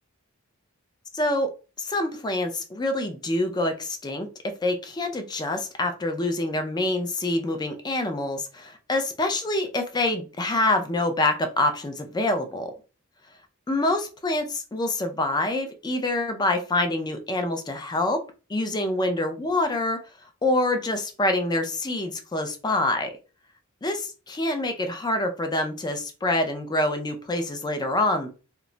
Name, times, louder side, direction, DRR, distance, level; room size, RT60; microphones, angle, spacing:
voice 1, 1.1-1.5 1.8-12.7 13.7-18.2 18.5-20.0 20.4-23.1 23.8-28.3, left 2 dB, 20° left, 6 dB, 0.4 m, -26 dB
2.2 x 2.0 x 3.7 m, 0.33 s
head